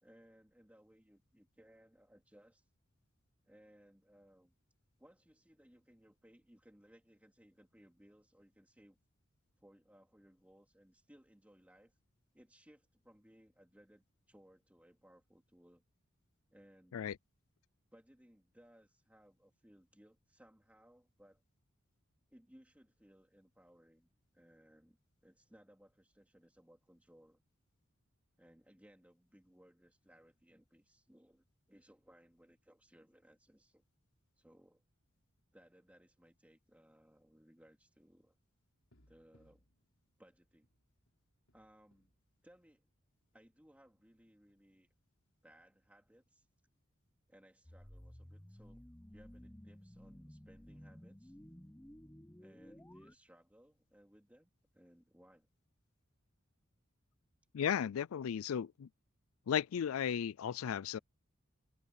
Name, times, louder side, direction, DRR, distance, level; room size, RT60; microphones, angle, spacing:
voice 1, 0.0-2.7 3.4-4.5 5.0-9.0 9.6-12.0 12.3-15.8 16.5-17.0 17.9-21.4 22.3-25.0 25.2-27.4 28.4-33.8 34.4-34.8 35.5-38.4 39.1-39.6 40.2-40.7 41.5-42.1 42.4-42.9 43.3-44.9 45.4-46.5 47.3-48.9 49.1-51.4 52.4-55.5, equal, 5° right, 2.7 m, -64 dB
sound 1, 38.8-43.4 43.6-43.8 44.1-44.7 46.2-46.3, equal, 70° left, 4.2 m, -74 dB
sound 2, 47.6-53.1, equal, 10° left, 1.0 m, -55 dB
voice 2, 57.5-58.9 59.5-61.0, left 8 dB, 85° left, 0.4 m, -35 dB
head